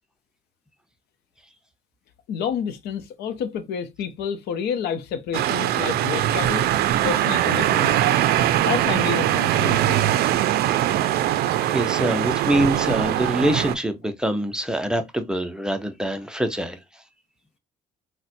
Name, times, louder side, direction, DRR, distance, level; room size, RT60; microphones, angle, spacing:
voice 1, 2.3-6.7 7.0-8.2 8.6-10.1, left 7 dB, 75° left, 0.6 m, -29 dB
sound 1, 5.3-13.8, right 12 dB, 70° right, 0.4 m, -21 dB
voice 2, 11.6-16.8, right 1 dB, 5° right, 0.5 m, -24 dB
4.1 x 2.1 x 2.5 m
cardioid pair, 110°, 17 cm